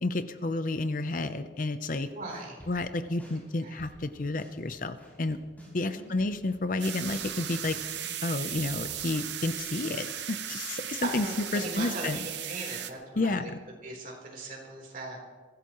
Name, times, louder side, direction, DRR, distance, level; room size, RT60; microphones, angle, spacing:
voice 1, 0.0-2.1 2.7-5.4 5.7-7.8 8.2-11.3 11.5-12.2 13.2-13.6, left 2 dB, 45° left, 10 dB, 0.6 m, -31 dB
sound 1, 2.0-8.1 8.5-9.8, equal, 10° left, 4.5 m, -52 dB
voice 2, 2.1-2.6 3.6-3.8 5.9-6.2 11.0-13.5 13.8-15.2, right 2 dB, 45° right, -1 dB, 3.7 m, -39 dB
sound 2, 6.8-12.9, right 10 dB, 65° right, 0.9 m, -37 dB
23.0 x 15.5 x 3.1 m, 1.5 s
head